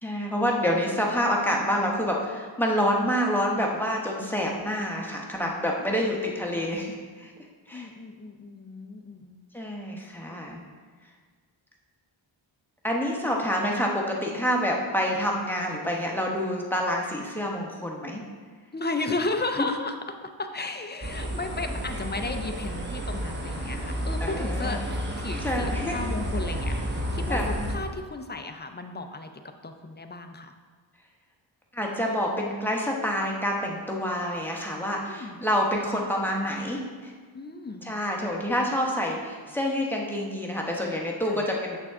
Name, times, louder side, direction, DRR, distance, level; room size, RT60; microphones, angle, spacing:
voice 1, 0.0-7.3 7.7-7.9 9.5-10.6 12.8-18.2 24.2-24.8 25.4-25.9 27.3-27.5 31.7-37.1 37.8-41.8, equal, 5° left, -2 dB, 0.9 m, -27 dB
voice 2, 5.8-6.1 7.7-9.4 18.7-24.8 25.2-27.4 27.7-29.3 29.6-30.5 35.1-35.4 37.3-37.9 41.3-41.4, left 3 dB, 25° left, 6 dB, 0.4 m, -34 dB
sound 1, 21.0-27.8, equal, 25° right, 0.9 m, -31 dB
7.7 x 5.9 x 3.5 m, 1.5 s
wide cardioid pair, 145°, 46 cm